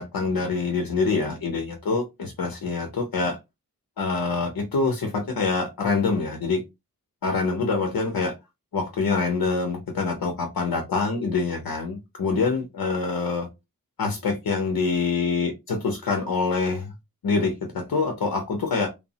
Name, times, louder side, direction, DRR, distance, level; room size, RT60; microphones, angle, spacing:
voice 1, 0.0-3.4 4.0-6.6 7.2-8.3 8.7-13.5 14.0-16.9 17.2-18.9, left 4 dB, 85° left, 0.6 m, -25 dB
3.0 x 2.0 x 2.7 m
wide cardioid pair, 65°, 35 cm